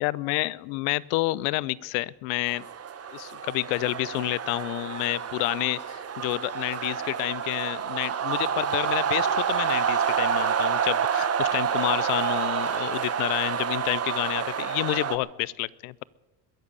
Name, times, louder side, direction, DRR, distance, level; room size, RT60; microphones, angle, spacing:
voice 1, 0.0-2.6 3.1-16.0, left 21 dB, 85° left, 23 dB, 0.6 m, -29 dB
sound 1, 2.5-15.2, right 7 dB, 35° right, 1.2 m, -28 dB
22.0 x 7.5 x 8.2 m, 1.1 s
supercardioid pair, 95°, 44 cm